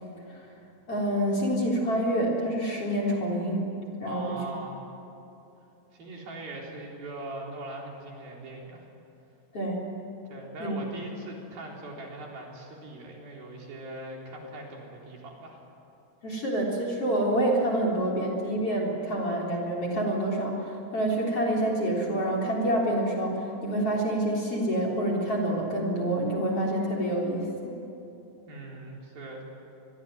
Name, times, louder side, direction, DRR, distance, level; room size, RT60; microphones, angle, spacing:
voice 1, 0.9-3.7 4.0-4.4 9.5-9.8 10.6-11.0 16.2-27.7, right 1 dB, 35° left, 0 dB, 4.4 m, -27 dB
voice 2, 4.0-4.8 5.9-8.9 10.3-15.6 28.5-29.4, right 2 dB, 55° right, -1 dB, 5.6 m, -41 dB
26.0 x 22.0 x 9.4 m, 3.0 s
omnidirectional pair, 5.1 m